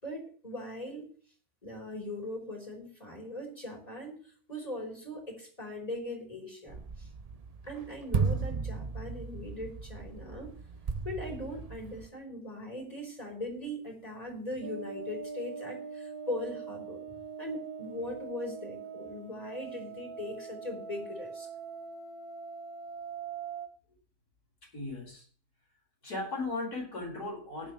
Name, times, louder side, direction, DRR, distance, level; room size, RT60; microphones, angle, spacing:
voice 1, 0.0-1.1 1.6-4.2 4.5-7.1 7.6-10.5 11.0-17.0 17.4-21.5, left 1 dB, 25° left, -1 dB, 4.0 m, -40 dB
sound 1, 6.7-12.1, right 5 dB, 40° right, 0.6 m, -35 dB
sound 2, 14.6-23.7, right 5 dB, 75° right, 1.4 m, -42 dB
voice 2, 24.7-25.3 26.0-27.7, left 2 dB, 80° left, -2 dB, 5.8 m, -36 dB
17.0 x 11.0 x 3.2 m, 0.44 s
omnidirectional pair, 1.6 m